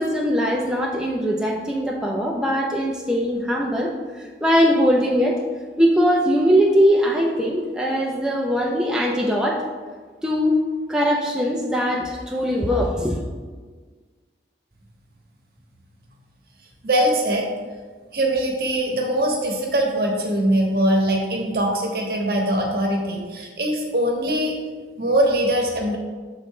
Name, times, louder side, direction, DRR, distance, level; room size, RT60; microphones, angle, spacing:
voice 1, 0.0-3.9 4.2-5.4 5.8-9.6 10.2-10.6 10.9-13.2, equal, 5° right, -3 dB, 0.5 m, -21 dB
voice 2, 16.8-17.5 18.1-24.5 25.0-26.0, right 1 dB, 55° right, 0 dB, 1.0 m, -22 dB
7.2 x 3.8 x 3.7 m, 1.5 s
head